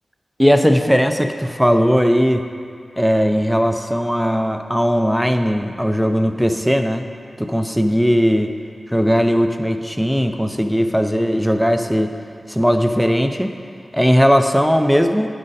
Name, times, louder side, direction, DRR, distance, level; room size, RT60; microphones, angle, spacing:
voice 1, 0.4-2.5 3.0-7.1 7.4-8.5 8.9-12.1 12.5-13.5 13.9-15.3, equal, ahead, 6 dB, 0.5 m, -17 dB
8.7 x 6.3 x 4.1 m, 2.3 s
wide cardioid pair, 80°, 0 cm